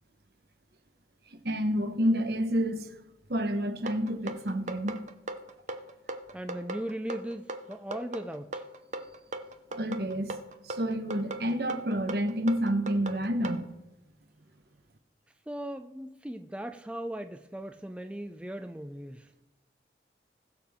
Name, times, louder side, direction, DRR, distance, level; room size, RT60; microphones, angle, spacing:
voice 1, 1.3-2.9 3.3-5.0 9.7-10.4 10.6-13.7, equal, 65° right, 1.1 m, -29 dB
sound 1, 3.9-13.6, right 2 dB, 40° right, 0.7 m, -38 dB
voice 2, 6.3-8.6 15.5-19.3, right 1 dB, 5° right, 0.4 m, -38 dB
20.0 x 6.9 x 3.6 m
head